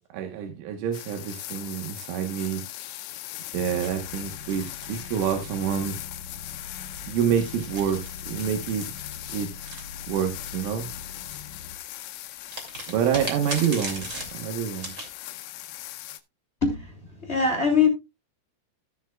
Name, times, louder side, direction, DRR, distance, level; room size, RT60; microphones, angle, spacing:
voice 1, 0.1-2.6 3.5-6.0 7.1-9.0 9.3-9.5 10.1-10.9 12.9-14.1 14.3-14.9, right 8 dB, 75° right, 3.6 m, -27 dB
sound 1, 0.9-16.2, left 15 dB, 80° left, 2.6 m, -39 dB
sound 2, 3.5-11.8, left 4 dB, 60° left, 2.1 m, -43 dB
sound 3, 3.8-5.8 6.8-10.5 12.5-15.1, right 1 dB, 25° right, 1.6 m, -39 dB
voice 2, 16.6-17.9, left 5 dB, 20° left, 2.2 m, -23 dB
16.0 x 7.3 x 2.3 m
omnidirectional pair, 5.8 m